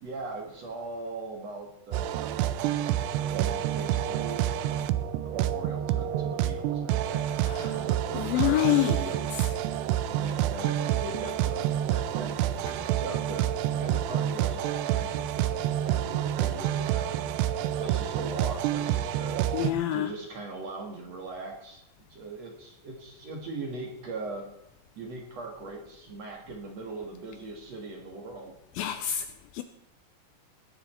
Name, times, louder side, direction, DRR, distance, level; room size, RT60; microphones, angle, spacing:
voice 1, 0.0-2.4 3.1-4.7 5.2-9.4 10.1-13.5 13.8-17.4 17.7-19.4 19.9-21.8 22.1-24.5 25.0-28.5, right 3 dB, 50° right, 2 dB, 2.3 m, -40 dB
sound 1, 1.9-19.7, right 11 dB, 85° right, 2.8 m, -28 dB
voice 2, 8.2-9.0 19.5-20.1 28.8-29.2 29.5-29.6, left 13 dB, 80° left, 10 dB, 2.2 m, -26 dB
19.0 x 10.0 x 4.4 m, 0.81 s
omnidirectional pair, 4.8 m